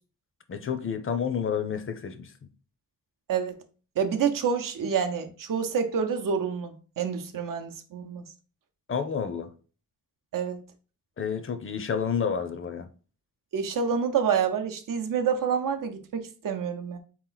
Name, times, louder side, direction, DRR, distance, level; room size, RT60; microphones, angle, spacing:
voice 1, 0.5-2.3 8.9-9.5 11.2-12.9, left 7 dB, 40° left, 0.5 m, -30 dB
voice 2, 4.0-8.2 10.3-10.6 13.5-17.0, right 6 dB, 85° right, 0.7 m, -28 dB
4.1 x 2.9 x 3.8 m
wide cardioid pair, 140°, 32 cm